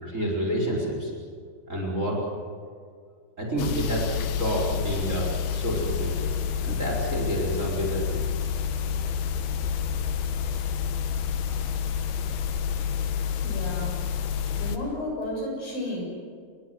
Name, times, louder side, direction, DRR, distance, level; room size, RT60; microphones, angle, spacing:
voice 1, 0.0-1.1 1.7-2.2 3.4-4.1 4.4-6.3 6.6-8.2, right 1 dB, 20° right, 0 dB, 4.6 m, -29 dB
sound 1, 3.6-14.8, left 7 dB, 90° left, 3.4 m, -29 dB
voice 2, 13.4-14.0 14.6-16.0, left 1 dB, 65° left, -1 dB, 9.0 m, -32 dB
29.5 x 21.0 x 7.8 m, 2.1 s
omnidirectional pair, 4.4 m